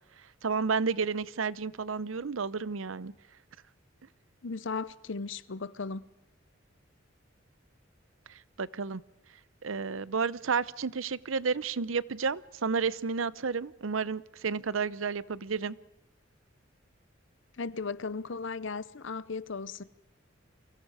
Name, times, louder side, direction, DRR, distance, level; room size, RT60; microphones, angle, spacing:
voice 1, 0.4-3.1 8.6-9.0 9.6-15.8, right 5 dB, 90° right, 0.7 m, -31 dB
voice 2, 4.4-6.0 17.6-19.8, left 4 dB, 70° left, 0.8 m, -36 dB
29.5 x 24.0 x 4.9 m
head